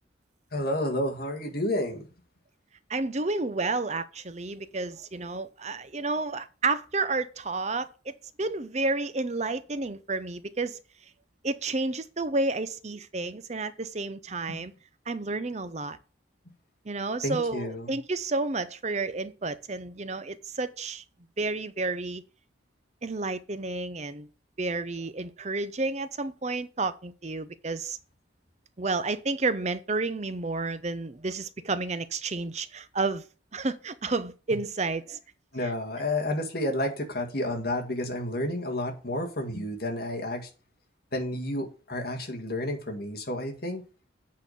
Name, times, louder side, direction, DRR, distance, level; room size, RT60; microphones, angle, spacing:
voice 1, 0.5-2.0 14.5-14.7 17.2-18.0 35.5-40.5 41.1-43.8, left 1 dB, 50° left, 2.0 m, -30 dB
voice 2, 2.9-10.8 11.4-14.7 15.1-16.0 16.9-21.0 21.4-22.2 23.0-24.3 24.6-28.0 28.8-33.3 33.5-35.2 35.6-35.7, right 3 dB, 35° right, 0.7 m, -31 dB
8.4 x 4.2 x 6.7 m
head